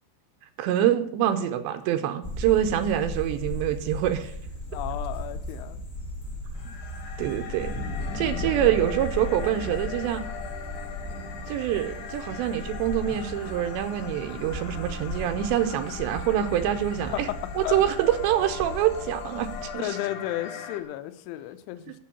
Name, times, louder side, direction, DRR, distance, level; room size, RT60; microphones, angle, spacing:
voice 1, 0.6-4.3 7.2-7.7 8.1-10.2 11.5-17.3 17.6-20.0, right 11 dB, 80° right, 9 dB, 2.8 m, -25 dB
sound 1, 2.2-19.7, left 1 dB, 35° left, 1.2 m, -36 dB
voice 2, 4.7-5.8 6.7-6.8 17.6-17.8 19.8-21.9, left 14 dB, 85° left, 11 dB, 3.1 m, -33 dB
sound 2, 6.5-20.8, left 7 dB, 70° left, 3.1 m, -40 dB
8.5 x 7.7 x 8.4 m, 0.68 s
omnidirectional pair, 5.4 m